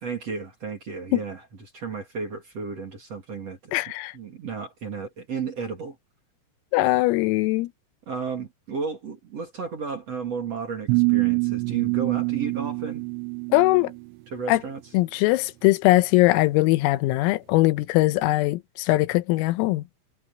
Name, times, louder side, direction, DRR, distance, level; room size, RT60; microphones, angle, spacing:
voice 1, 0.0-1.4 1.7-3.7 4.1-6.0 8.1-13.1 14.3-14.8, right 5 dB, 40° right, 3.0 m, -33 dB
voice 2, 3.7-4.2 6.7-7.7 13.5-13.9 14.5-14.6 14.9-19.8, left 19 dB, 90° left, 3.6 m, -21 dB
sound 1, 10.9-14.0, right 33 dB, 85° right, 2.7 m, -25 dB
omnidirectional pair, 6.0 m